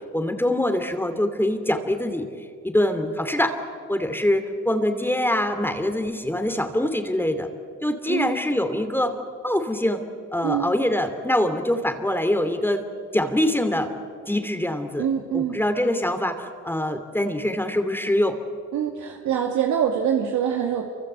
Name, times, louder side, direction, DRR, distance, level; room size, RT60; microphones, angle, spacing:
voice 1, 0.1-2.3 2.6-3.6 3.9-7.5 7.8-9.1 9.4-10.0 10.3-12.8 13.1-13.9 14.3-15.1 15.3-18.4, left 1 dB, 5° left, 7 dB, 2.7 m, -24 dB
voice 2, 15.0-15.6 18.7-20.8, right 8 dB, 80° right, 2 dB, 2.3 m, -24 dB
28.5 x 25.0 x 8.1 m, 2.1 s
cardioid pair, 90°, 30 cm